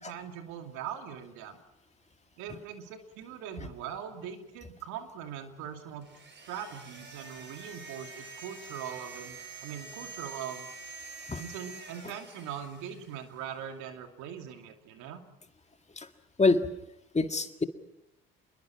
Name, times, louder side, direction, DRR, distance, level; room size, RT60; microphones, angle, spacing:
voice 1, 0.0-1.6 2.4-6.1 6.5-10.7 11.4-15.2, right 8 dB, 75° right, 5 dB, 2.5 m, -41 dB
sound 1, 6.0-13.4, right 4 dB, 40° right, 5.2 m, -46 dB
voice 2, 16.4-16.7 17.1-17.6, left 3 dB, 25° left, 7 dB, 1.9 m, -25 dB
27.0 x 21.5 x 6.0 m, 0.87 s
hypercardioid pair, 55°, 29 cm